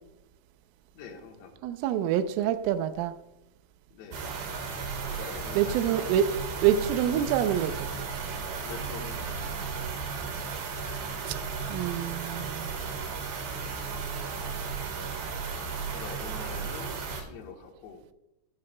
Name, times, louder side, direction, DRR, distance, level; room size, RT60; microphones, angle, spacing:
voice 1, 0.9-1.6 3.9-4.3 5.1-6.2 8.6-9.5 15.9-18.0, left 5 dB, 70° left, 3.1 m, -44 dB
voice 2, 1.6-3.1 5.5-6.3 6.6-7.9 11.3-11.4 11.7-12.7, right 10 dB, 85° right, 3.2 m, -26 dB
sound 1, 4.1-17.2, right 5 dB, 60° right, 2.7 m, -35 dB
14.5 x 10.0 x 2.2 m
omnidirectional pair, 5.7 m